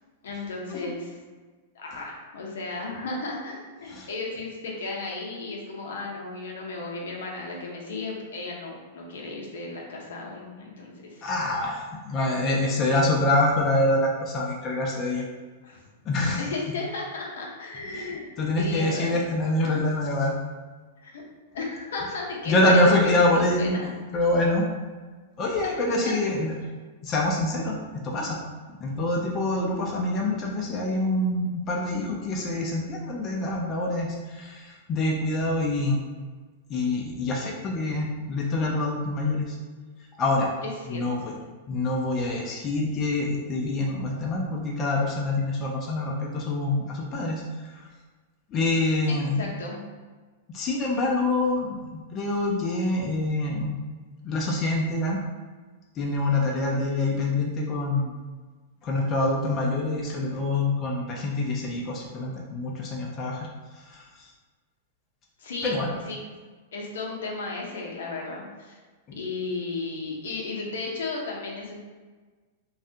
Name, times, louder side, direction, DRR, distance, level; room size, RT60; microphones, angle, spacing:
voice 1, 0.2-1.2 1.7-11.3 15.6-15.8 16.4-18.2 18.6-19.2 21.0-21.2 21.5-23.9 25.9-26.1 40.6-41.0 49.1-49.8 65.4-66.2 66.7-68.7 69.1-71.8, left 3 dB, 75° left, -2 dB, 0.6 m, -34 dB
voice 2, 11.2-15.2 16.1-16.5 17.9-20.3 22.5-23.9 24.1-24.7 25.4-26.6 27.0-27.8 28.0-28.4 28.8-36.0 36.7-39.6 40.2-40.5 40.8-41.3 41.7-47.4 47.7-47.8 48.5-49.5 50.5-51.8 52.1-53.8 54.2-55.2 56.0-58.1 58.8-63.5 63.9-64.0 65.6-66.0 69.1-69.2, left 2 dB, 35° left, -1 dB, 0.4 m, -25 dB
2.4 x 2.2 x 2.7 m, 1.4 s
hypercardioid pair, 110°, 0 cm